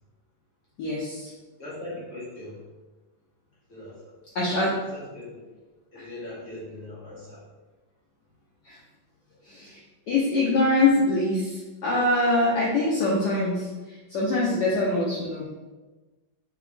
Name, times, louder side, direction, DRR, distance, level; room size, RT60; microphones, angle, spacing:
voice 1, 0.8-1.3 4.3-4.8 6.0-6.1 8.7-8.8 9.5-9.8 10.1-15.5, left 2 dB, 65° left, -5 dB, 1.1 m, -24 dB
voice 2, 1.6-2.6 3.7-4.2 4.9-5.4 5.9-7.4, left 1 dB, 35° left, -8 dB, 1.4 m, -40 dB
4.9 x 3.0 x 3.3 m, 1.2 s
omnidirectional pair, 2.3 m